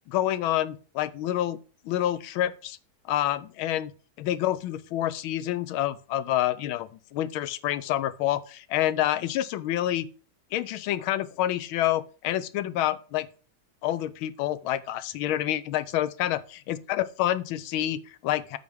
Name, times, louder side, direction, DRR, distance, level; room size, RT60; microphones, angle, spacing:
voice 1, 0.1-1.6 1.8-2.8 3.1-3.9 4.2-10.1 10.5-13.3 13.8-16.4 16.7-18.6, left 12 dB, 90° left, 1.5 m, -28 dB
8.3 x 4.2 x 6.1 m
omnidirectional pair, 2.2 m